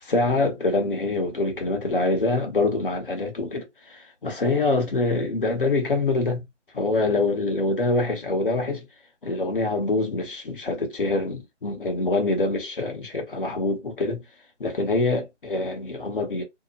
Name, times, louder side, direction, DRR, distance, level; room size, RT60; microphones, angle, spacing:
voice 1, 0.0-6.4 6.7-8.8 9.2-14.2 14.6-16.4, left 2 dB, 45° left, 1.1 m, -25 dB
2.8 x 2.3 x 2.5 m
figure-of-eight pair, 165°, 36 cm